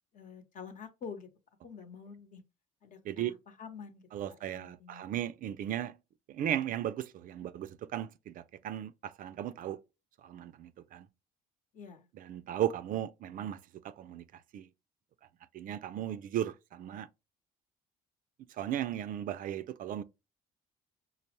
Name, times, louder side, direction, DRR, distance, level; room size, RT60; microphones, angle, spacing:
voice 1, 0.1-1.3 1.6-2.4 2.8-5.0 11.7-12.1, left 6 dB, 50° left, 0.9 m, -48 dB
voice 2, 4.1-6.0 6.3-9.8 10.2-11.1 12.2-13.6 13.8-14.7 15.5-17.1 18.6-20.0, right 11 dB, 55° right, 0.4 m, -36 dB
5.2 x 2.0 x 2.9 m
cardioid pair, 110°, 17 cm